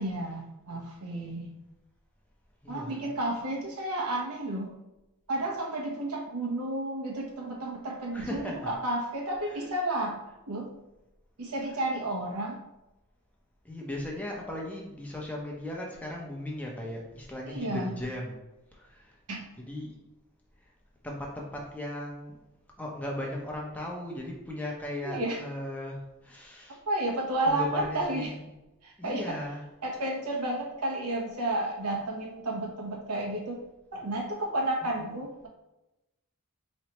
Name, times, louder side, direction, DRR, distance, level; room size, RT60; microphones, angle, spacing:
voice 1, 0.0-1.5 2.7-4.7 5.3-10.2 10.5-10.7 11.4-12.6 17.5-17.9 19.3-19.4 25.0-25.4 26.9-28.3 28.8-29.4 29.8-33.6 33.9-35.5, right 1 dB, 85° right, -1 dB, 1.1 m, -31 dB
voice 2, 2.6-3.0 8.1-8.7 9.4-9.7 11.6-11.9 13.6-18.4 18.7-19.1 19.6-19.9 21.0-22.4 22.8-26.8 27.4-28.4 29.0-29.7 34.8-35.2, left 1 dB, 5° left, -2 dB, 0.8 m, -37 dB
4.5 x 3.2 x 3.0 m, 0.97 s
head